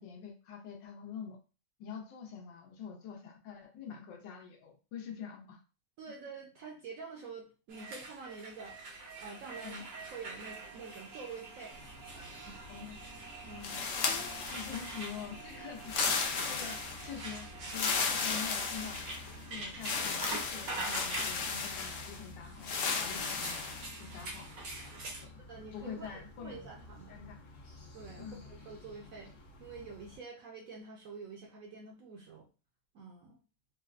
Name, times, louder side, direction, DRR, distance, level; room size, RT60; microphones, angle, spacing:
voice 1, 0.0-1.4 1.8-5.6 9.6-9.8 12.7-13.0 14.0-19.0 19.5-23.7 24.0-24.5 25.2-25.3 25.7-26.7 27.1-27.4 28.2-28.4, left 7 dB, 90° left, 2 dB, 1.4 m, -45 dB
voice 2, 6.0-11.8 12.1-12.6 13.5-13.9 25.5-27.2 27.9-29.3 29.6-32.5 32.9-33.4, right 4 dB, 70° right, 0 dB, 0.8 m, -47 dB
sound 1, 7.7-25.2, right 3 dB, 85° right, 1.6 m, -45 dB
sound 2, 11.7-30.2, left 2 dB, 55° left, 1.1 m, -52 dB
sound 3, 13.6-15.1 15.8-17.1 17.7-19.3 19.8-22.2 22.6-23.9, left 5 dB, 75° left, 0.7 m, -34 dB
3.9 x 2.1 x 2.4 m, 0.34 s
omnidirectional pair, 1.9 m